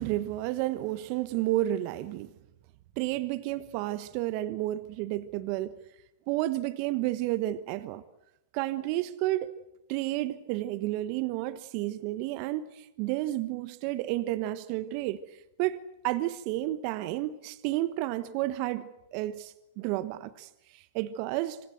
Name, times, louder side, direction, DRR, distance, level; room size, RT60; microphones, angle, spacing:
voice 1, 0.0-2.3 3.0-5.8 6.3-8.0 8.5-9.6 9.9-21.6, right 15 dB, 45° right, 1.2 m, -31 dB
26.0 x 26.0 x 7.9 m
hypercardioid pair, 110°, 0 cm